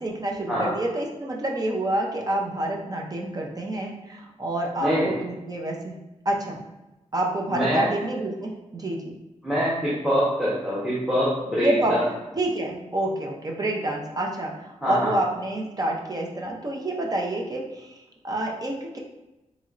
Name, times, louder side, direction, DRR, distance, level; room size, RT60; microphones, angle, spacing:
voice 1, 0.0-5.9 6.3-6.6 7.1-9.2 11.6-11.9 12.4-18.0 18.2-19.0, right 1 dB, 30° right, 0 dB, 0.5 m, -28 dB
voice 2, 4.8-5.1 7.5-7.9 9.4-12.0 14.8-15.1, equal, 5° right, -9 dB, 0.9 m, -24 dB
4.0 x 3.0 x 2.4 m, 0.99 s
wide cardioid pair, 115°, 13 cm